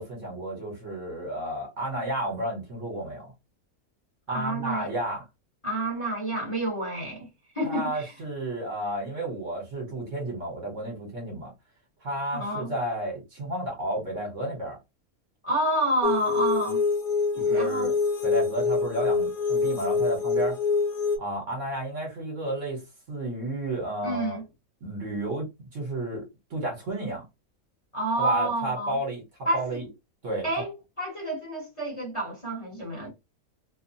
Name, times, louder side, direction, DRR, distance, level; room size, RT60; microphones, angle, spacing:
voice 1, 0.0-3.3 4.3-5.2 7.6-11.5 12.0-14.8 17.4-17.9 18.2-20.6 21.2-22.8 23.1-24.4 24.8-27.2 28.2-29.2 29.5-29.9 30.2-30.5, right 1 dB, 55° right, 1.6 m, -32 dB
voice 2, 4.3-4.9 5.6-7.3 7.5-8.1 12.3-12.7 15.4-16.8 17.3-17.9 24.0-24.4 27.9-29.0 29.4-29.8 30.4-33.1, right 1 dB, 20° left, 1.4 m, -29 dB
sound 1, 16.0-21.2, left 4 dB, 70° left, 1.2 m, -25 dB
2.9 x 2.4 x 2.6 m
omnidirectional pair, 1.6 m